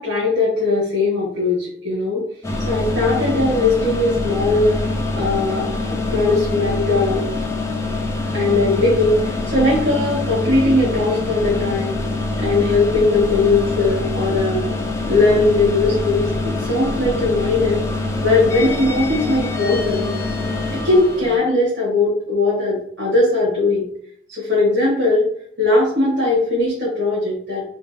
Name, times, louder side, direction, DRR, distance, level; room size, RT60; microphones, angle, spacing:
voice 1, 0.0-2.3 2.7-4.8 5.2-7.2 8.3-12.0 12.4-14.7 15.1-17.8 18.2-20.1 20.7-23.9 24.3-25.3 25.6-27.6, left 2 dB, 85° right, -6 dB, 1.4 m, -19 dB
sound 1, 2.4-21.4, left 2 dB, 15° left, 0.5 m, -24 dB
3.4 x 2.2 x 3.9 m, 0.65 s
head